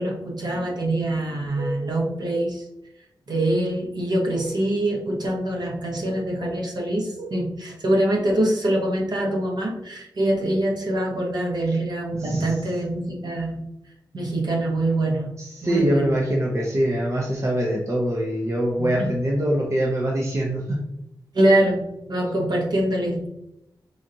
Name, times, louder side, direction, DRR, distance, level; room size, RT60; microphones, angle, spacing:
voice 1, 0.0-2.6 3.3-13.7 14.1-15.3 15.6-16.2 18.8-19.2 21.3-23.3, right 1 dB, 60° right, -1 dB, 1.0 m, -24 dB
voice 2, 15.4-20.8, right 1 dB, 35° right, -2 dB, 0.7 m, -23 dB
4.9 x 2.5 x 2.8 m, 0.85 s
cardioid pair, 75°, 8 cm